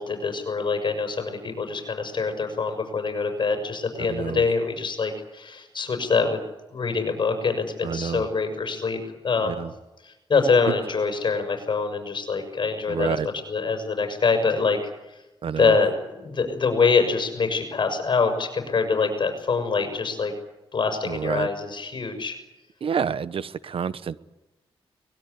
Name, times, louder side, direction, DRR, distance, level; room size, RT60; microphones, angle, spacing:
voice 1, 0.0-6.4 6.7-9.0 9.2-9.6 10.0-13.2 13.5-14.8 15.6-20.3 20.7-22.4, left 4 dB, 50° left, 6 dB, 6.4 m, -24 dB
voice 2, 4.1-4.4 7.8-8.3 9.4-9.7 10.7-10.8 12.9-13.3 15.4-15.8 21.0-21.5 22.8-24.3, right 7 dB, 60° right, 14 dB, 1.1 m, -28 dB
24.0 x 21.0 x 9.7 m, 1.0 s
cardioid pair, 100°, 10 cm